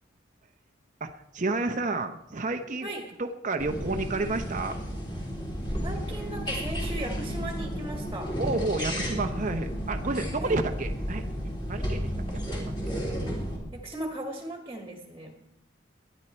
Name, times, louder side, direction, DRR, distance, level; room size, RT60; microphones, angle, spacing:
voice 1, 1.0-2.9 3.2-4.8 8.4-11.2 11.7-12.6, right 3 dB, 40° right, 6 dB, 0.8 m, -30 dB
sound 1, 3.6-13.6, equal, 25° left, 4.0 m, -32 dB
voice 2, 5.8-8.3 10.4-10.6 13.7-15.3, right 1 dB, 15° right, 2 dB, 1.8 m, -37 dB
20.0 x 11.0 x 4.4 m, 0.81 s
head